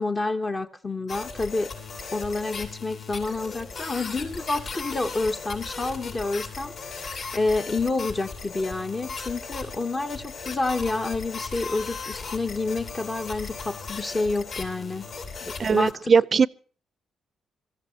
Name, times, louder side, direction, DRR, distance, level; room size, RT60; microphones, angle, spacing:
voice 1, 0.0-1.7 2.1-15.1 15.4-16.1, left 3 dB, 30° left, 1.0 m, -29 dB
sound 1, 1.1-15.9, left 4 dB, 60° left, 6.6 m, -37 dB
voice 2, 15.6-16.5, right 5 dB, 40° right, 0.6 m, -19 dB
25.5 x 14.5 x 2.9 m
cardioid pair, 90°, 0 cm